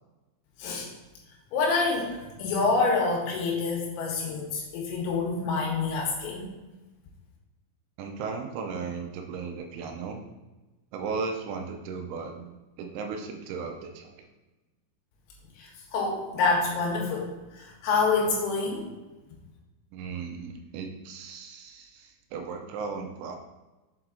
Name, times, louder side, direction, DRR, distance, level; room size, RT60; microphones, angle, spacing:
voice 1, 1.5-6.5 15.6-18.9, left 4 dB, 85° left, -2 dB, 4.2 m, -27 dB
voice 2, 8.0-10.2 10.9-14.3 19.9-23.4, right 5 dB, 80° right, 3 dB, 3.0 m, -36 dB
8.0 x 4.5 x 3.7 m, 1.1 s
omnidirectional pair, 5.7 m